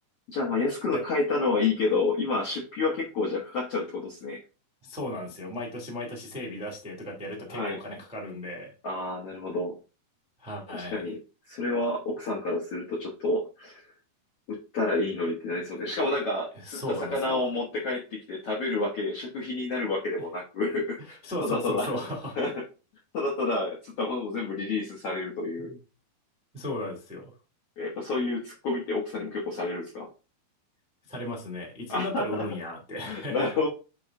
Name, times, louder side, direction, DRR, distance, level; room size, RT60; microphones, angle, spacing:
voice 1, 0.3-4.4 7.5-7.8 8.8-9.7 10.7-11.2 11.5-13.9 14.5-22.0 22.3-22.6 23.1-25.7 27.8-30.1 31.9-32.5 33.1-33.7, left 3 dB, 70° left, -3 dB, 1.4 m, -29 dB
voice 2, 4.8-8.7 10.4-11.0 16.6-17.4 21.2-22.4 25.7-25.8 26.5-27.3 31.1-33.5, left 1 dB, 5° right, -3 dB, 0.5 m, -35 dB
8.4 x 3.1 x 3.6 m, 0.34 s
omnidirectional pair, 4.5 m